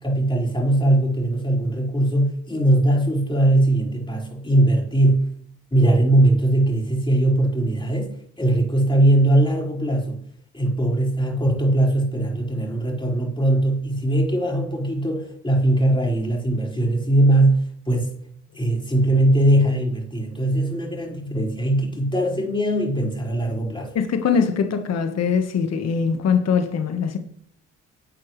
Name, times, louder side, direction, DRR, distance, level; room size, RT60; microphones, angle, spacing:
voice 1, 0.0-5.3 5.7-10.2 10.5-18.1 18.5-23.9, right 1 dB, 15° left, 5.2 m, -20 dB
voice 2, 23.9-27.2, left 6 dB, 60° left, 1.4 m, -22 dB
12.5 x 8.8 x 3.2 m
supercardioid pair, 70°, 30 cm